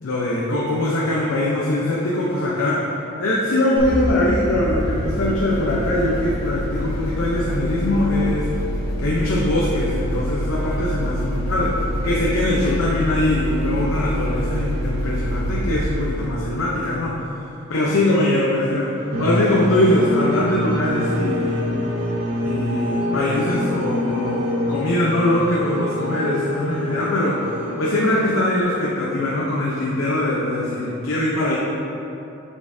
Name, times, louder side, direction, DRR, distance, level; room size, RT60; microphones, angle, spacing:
voice 1, 0.0-2.8 3.2-8.5 9.0-17.2 17.7-21.7 22.4-31.6, left 1 dB, 70° left, -5 dB, 0.8 m, -22 dB
sound 1, 3.8-17.2, equal, 45° left, 1.3 m, -26 dB
sound 2, 19.1-28.6, equal, 80° right, 1.0 m, -26 dB
8.3 x 5.4 x 2.7 m, 2.9 s
head